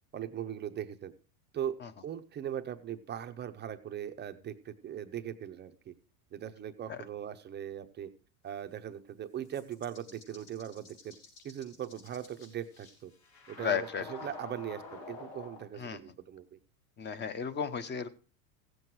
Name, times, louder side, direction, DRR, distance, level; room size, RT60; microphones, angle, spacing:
voice 1, 0.1-1.1 1.5-5.9 6.3-8.1 8.4-11.2 11.4-13.1 13.5-16.6, right 10 dB, 20° right, 8 dB, 0.7 m, -40 dB
sound 1, 9.5-15.6, left 4 dB, 80° left, 6.4 m, -48 dB
voice 2, 13.6-14.0 15.8-16.0 17.0-18.1, left 7 dB, 20° left, 12 dB, 0.9 m, -34 dB
15.5 x 7.8 x 4.6 m, 0.36 s
supercardioid pair, 125°, 47 cm